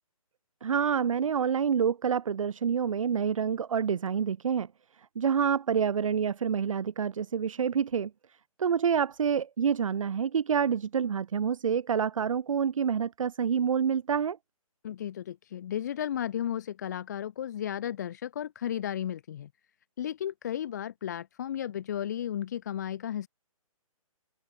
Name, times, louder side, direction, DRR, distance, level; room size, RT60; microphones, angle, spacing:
voice 1, 0.6-14.4, right 7 dB, 65° right, 0.9 m, -28 dB
voice 2, 14.8-19.5 20.0-23.3, left 10 dB, 30° left, 0.7 m, -34 dB
hypercardioid pair, 170°, 19 cm